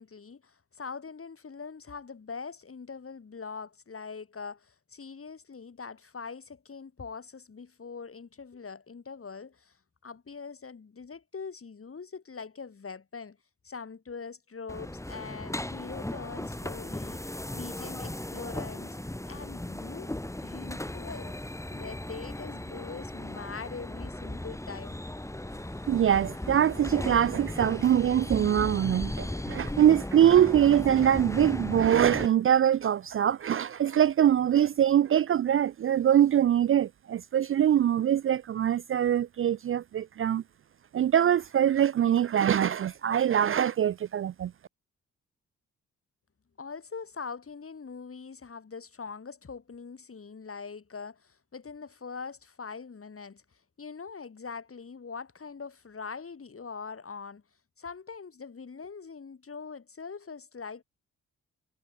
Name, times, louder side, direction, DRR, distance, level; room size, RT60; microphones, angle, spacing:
voice 1, 0.0-9.8 10.0-13.4 13.6-19.0 19.3-21.4 21.7-25.0 46.6-53.4 53.8-57.4 57.8-60.8, left 5 dB, 40° left, 3.6 m, -42 dB
sound 1, 14.7-32.3, left 1 dB, 10° left, 2.4 m, -37 dB
voice 2, 25.9-40.4 40.9-44.5, right 10 dB, 40° right, 0.4 m, -23 dB
hypercardioid pair, 40°, 33 cm